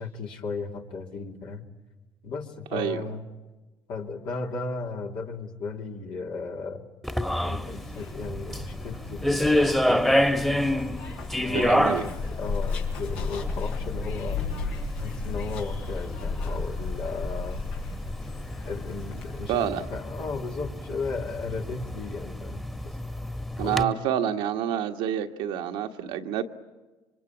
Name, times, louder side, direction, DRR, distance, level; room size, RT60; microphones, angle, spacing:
voice 1, 0.0-1.6 2.2-3.2 3.9-6.8 7.4-10.7 11.3-14.4 14.9-17.6 18.6-19.6 19.9-23.0 23.6-24.0, left 4 dB, 70° left, 0 dB, 2.7 m, -35 dB
voice 2, 2.7-3.0 11.5-12.1 19.5-19.8 23.6-26.4, right 10 dB, 80° right, 4 dB, 1.6 m, -28 dB
sound 1, 7.0-23.8, equal, 5° left, 1.5 m, -29 dB
Zipper (clothing), 7.7-19.4, left 4 dB, 85° left, 4.9 m, -34 dB
27.5 x 24.5 x 8.6 m, 1.2 s
supercardioid pair, 70°, 9 cm